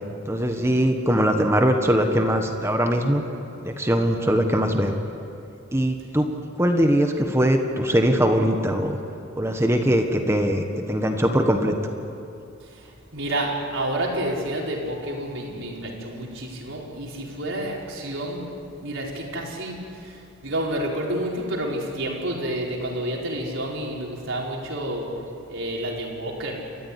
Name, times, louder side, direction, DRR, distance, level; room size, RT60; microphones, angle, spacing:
voice 1, 0.3-3.2 3.6-4.9 5.7-6.3 6.6-9.0 9.4-11.7, equal, 15° right, 4 dB, 1.4 m, -21 dB
voice 2, 13.1-18.5 18.8-25.1 25.5-26.6, right 1 dB, 70° right, -2 dB, 4.8 m, -29 dB
29.0 x 14.0 x 10.0 m, 2.7 s
head